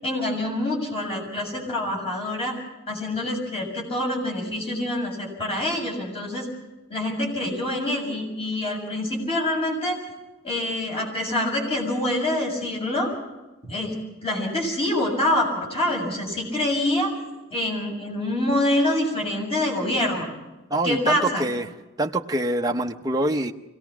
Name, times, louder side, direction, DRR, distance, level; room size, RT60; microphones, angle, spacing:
voice 1, 0.0-2.5 2.9-6.5 6.9-10.0 10.4-13.1 13.6-13.9 14.2-17.1 17.5-20.3 20.8-21.4, left 1 dB, 30° left, 0 dB, 7.1 m, -26 dB
voice 2, 20.7-21.6 22.0-23.5, right 1 dB, 20° right, 3 dB, 0.7 m, -25 dB
24.5 x 18.0 x 6.1 m, 1.0 s
head